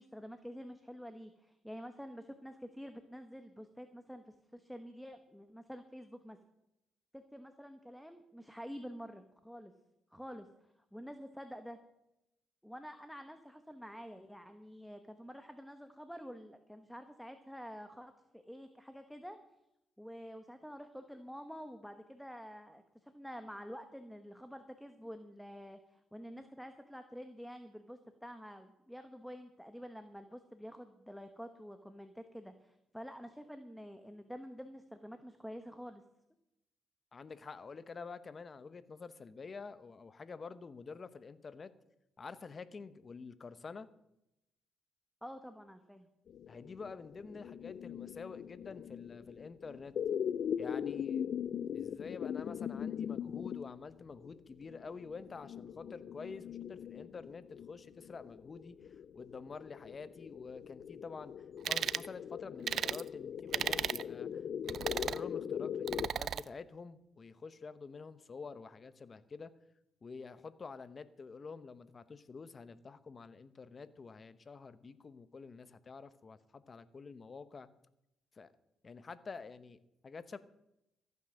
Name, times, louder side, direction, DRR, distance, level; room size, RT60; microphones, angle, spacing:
voice 1, 0.0-6.4 7.1-9.7 10.1-11.8 12.6-19.4 20.0-36.0 45.2-46.1, equal, ahead, 8 dB, 1.2 m, -48 dB
voice 2, 37.1-41.7 42.2-43.9 46.5-49.9 50.6-51.3 51.7-61.3 61.7-69.5 70.0-77.7 78.3-78.5 78.8-79.8 80.0-80.4, left 4 dB, 35° left, 13 dB, 1.0 m, -48 dB
sound 1, 46.3-66.1, left 8 dB, 60° left, 0.4 m, -41 dB
sound 2, 61.6-62.1 62.7-63.0 63.5-64.0 64.7-65.2 65.9-66.4, right 9 dB, 60° right, 0.4 m, -34 dB
14.5 x 9.5 x 6.4 m, 0.86 s
cardioid pair, 90°, 0 cm